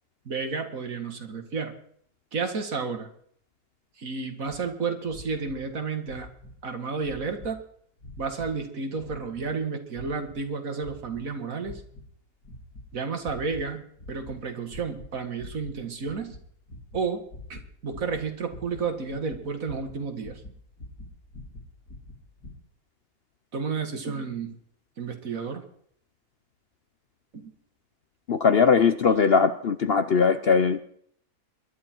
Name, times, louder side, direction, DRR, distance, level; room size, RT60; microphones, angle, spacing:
voice 1, 0.3-1.8 2.3-3.1 4.0-6.3 6.6-7.6 8.2-11.8 12.9-16.4 16.9-17.2 17.5-20.4 23.5-24.6 25.0-25.6 27.3-27.5, right 5 dB, 65° right, 6 dB, 2.3 m, -31 dB
sound 1, 4.5-4.6 5.1-5.7 6.0-6.6 7.0-7.6 8.0-8.6 9.0-9.6 9.9-10.4 10.8-11.3 11.6-12.1 12.4-12.9 13.2-13.7 14.0-14.4 14.7-15.1 15.4-22.5, left 2 dB, 65° left, 3.5 m, -45 dB
voice 2, 28.3-30.8, left 5 dB, 50° left, 11 dB, 0.8 m, -20 dB
22.5 x 11.0 x 4.6 m, 0.63 s
omnidirectional pair, 1.6 m